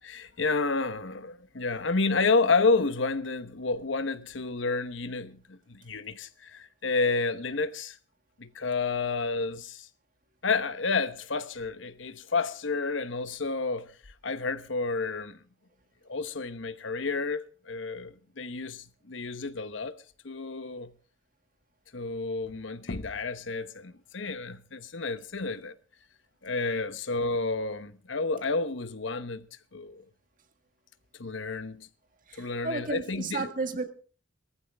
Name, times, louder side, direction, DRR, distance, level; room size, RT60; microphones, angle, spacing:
voice 1, 0.0-8.0 8.4-9.9 10.4-14.0 14.2-15.4 16.1-20.0 20.2-20.9 21.9-25.7 26.4-30.0 31.2-31.9 32.4-33.5, left 3 dB, 70° left, 1.0 m, -30 dB
voice 2, 32.3-33.9, right 3 dB, 45° right, 1.7 m, -33 dB
19.5 x 14.0 x 3.5 m
head